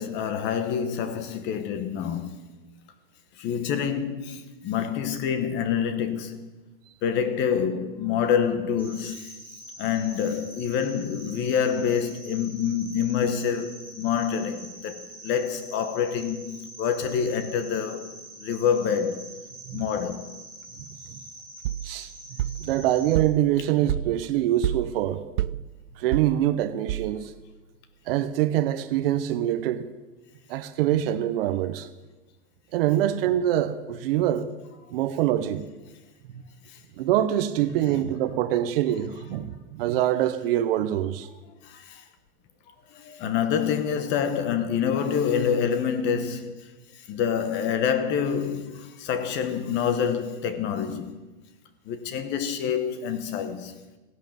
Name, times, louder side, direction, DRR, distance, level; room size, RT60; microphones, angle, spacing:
voice 1, 0.0-2.4 3.4-6.4 7.0-9.3 9.8-18.1 18.4-19.2 19.7-20.2 41.7-42.0 42.9-46.6 47.1-51.2 51.9-53.7, left 7 dB, 25° left, 1.1 m, -27 dB
Cricket, 8.8-23.2, right 1 dB, 5° left, 3.6 m, -45 dB
voice 2, 20.8-21.2 21.8-22.1 22.6-25.2 26.0-27.3 28.1-29.9 30.5-31.9 32.7-34.5 34.9-35.7 36.3-36.4 37.0-41.3, right 12 dB, 45° right, 0.9 m, -25 dB
sound 1, 21.6-27.5, right 13 dB, 75° right, 0.5 m, -31 dB
16.0 x 11.0 x 7.6 m
supercardioid pair, 155°, 42 cm